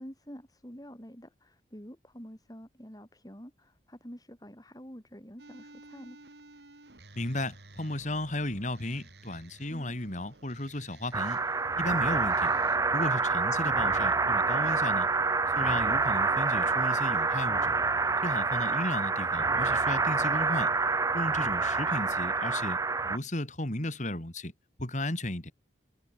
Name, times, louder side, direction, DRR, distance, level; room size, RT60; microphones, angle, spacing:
voice 1, 0.0-6.2, equal, 20° left, 5.2 m, -48 dB
sound 1, 5.4-12.8, right 2 dB, 65° right, 3.9 m, -54 dB
voice 2, 7.1-11.4 11.8-12.5 12.9-15.1 15.5-17.7 18.2-20.7 21.1-22.8 23.0-24.5 24.8-25.5, left 1 dB, 40° left, 3.1 m, -34 dB
sound 2, 11.1-23.2, right 4 dB, 15° right, 0.6 m, -27 dB
head